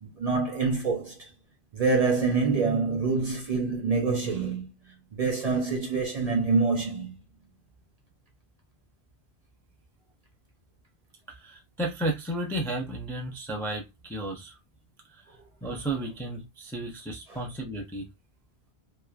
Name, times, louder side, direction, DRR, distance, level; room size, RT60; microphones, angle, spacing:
voice 1, 0.0-1.3 1.7-7.2 17.3-17.4, right 4 dB, 45° right, 0.5 m, -26 dB
voice 2, 11.4-14.5 15.6-18.0, right 1 dB, 5° left, 0.3 m, -33 dB
3.0 x 2.1 x 2.3 m
omnidirectional pair, 1.1 m